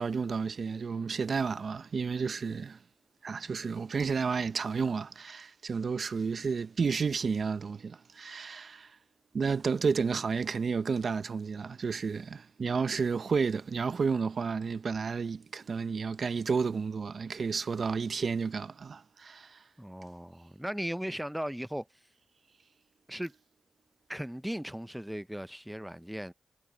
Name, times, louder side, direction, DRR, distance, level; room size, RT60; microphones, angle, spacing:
voice 1, 0.0-2.8 3.2-9.0 9.3-19.6, right 5 dB, 65° right, 0.7 m, -31 dB
voice 2, 19.8-21.9 23.1-23.3 24.1-26.3, equal, 5° right, 0.5 m, -37 dB
cardioid pair, 55°, 0 cm